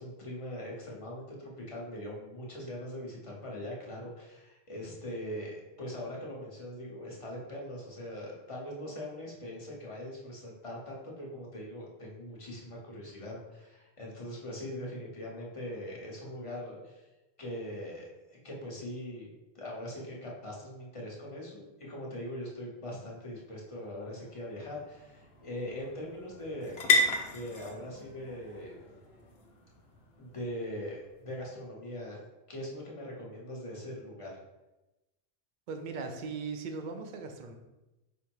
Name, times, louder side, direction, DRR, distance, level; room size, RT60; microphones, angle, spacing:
voice 1, 0.0-17.0 17.4-19.3 19.5-26.8 27.3-28.7 30.2-32.2 32.5-34.4, left 1 dB, 30° left, -3 dB, 0.9 m, -41 dB
sound 1, 23.3-31.1, left 2 dB, 65° left, 0.9 m, -35 dB
voice 2, 35.7-37.5, right 4 dB, 55° right, 5 dB, 0.6 m, -38 dB
5.1 x 2.1 x 4.5 m, 1.0 s
omnidirectional pair, 1.2 m